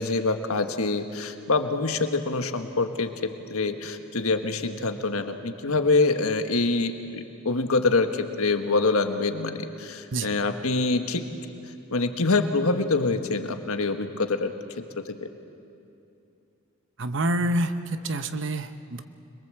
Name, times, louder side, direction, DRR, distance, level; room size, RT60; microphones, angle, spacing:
voice 1, 0.0-11.2 11.9-14.5 15.0-15.3, left 3 dB, 80° left, 7 dB, 1.4 m, -25 dB
voice 2, 17.0-19.0, right 1 dB, 55° right, 9 dB, 0.9 m, -27 dB
25.5 x 22.5 x 7.7 m, 2.7 s
head